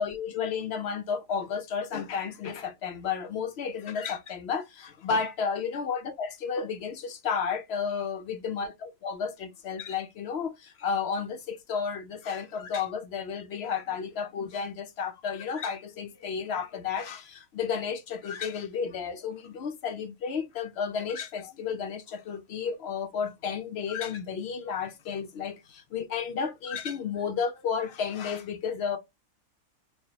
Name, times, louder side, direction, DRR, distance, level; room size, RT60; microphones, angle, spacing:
voice 1, 0.0-29.0, left 6 dB, 65° left, 0.6 m, -32 dB
4.1 x 2.4 x 2.7 m
omnidirectional pair, 1.5 m